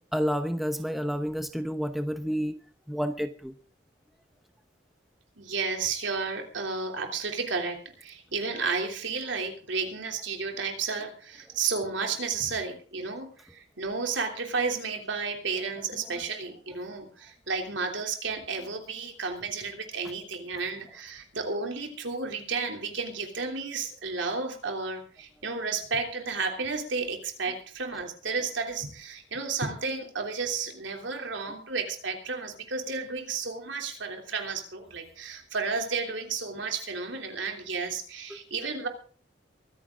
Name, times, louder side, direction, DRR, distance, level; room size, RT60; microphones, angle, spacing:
voice 1, 0.1-2.6 2.9-3.5, equal, ahead, 8 dB, 0.8 m, -29 dB
voice 2, 5.4-38.9, right 4 dB, 75° right, 3 dB, 3.3 m, -32 dB
23.5 x 9.9 x 3.8 m, 0.42 s
head